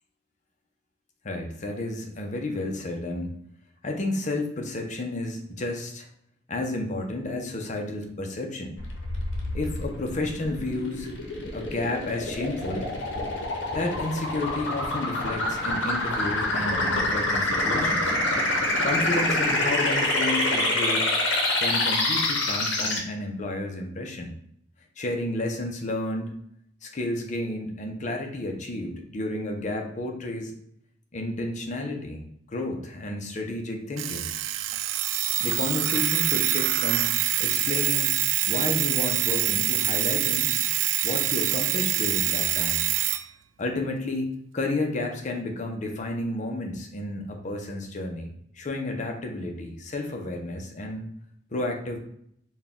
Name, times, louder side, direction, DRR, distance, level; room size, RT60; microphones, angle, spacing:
voice 1, 1.2-3.3 3.8-6.1 6.5-8.8 9.5-11.1 11.5-12.9 13.7-18.2 18.8-21.1 21.6-24.3 25.0-26.3 26.8-30.5 31.1-34.3 35.4-38.1 38.5-40.5 41.0-42.9 43.6-51.1 51.5-52.0, left 2 dB, 40° left, 2 dB, 0.6 m, -31 dB
sound 1, 8.8-23.0, left 2 dB, 75° left, 0.8 m, -26 dB
Alarm, 34.0-43.2, right 13 dB, 90° right, 0.3 m, -25 dB
4.3 x 2.3 x 3.6 m, 0.71 s
head